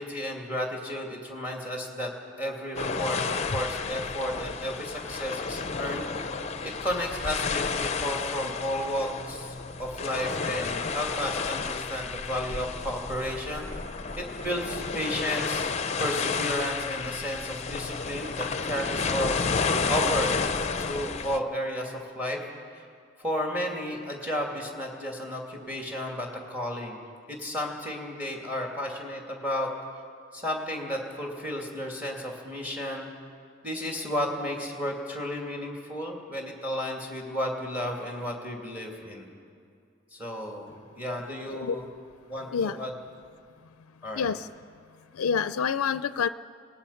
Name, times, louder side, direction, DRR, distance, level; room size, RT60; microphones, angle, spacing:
voice 1, 0.0-2.1 2.4-6.3 6.6-13.7 14.2-15.7 16.0-20.5 20.8-22.5 22.8-22.9 23.2-27.0 27.3-29.7 30.3-33.1 33.6-39.3 40.1-41.8 42.3-43.0 44.0-44.3, equal, 10° right, 0 dB, 2.5 m, -33 dB
sound 1, 2.8-21.4, left 5 dB, 30° left, 0.6 m, -31 dB
voice 2, 44.1-44.5 45.1-46.3, left 6 dB, 90° left, 13 dB, 0.4 m, -27 dB
27.5 x 18.5 x 5.7 m, 2.4 s
head